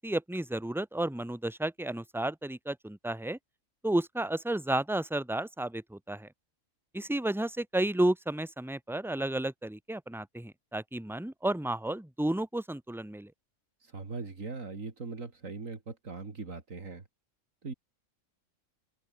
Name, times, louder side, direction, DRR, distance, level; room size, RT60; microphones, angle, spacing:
voice 1, 0.0-3.4 3.8-6.3 6.9-13.3, right 1 dB, ahead, 1.6 m, -32 dB
voice 2, 13.8-17.0 17.6-17.7, right 4 dB, 80° right, 3.1 m, -40 dB
open air
omnidirectional pair, 1.3 m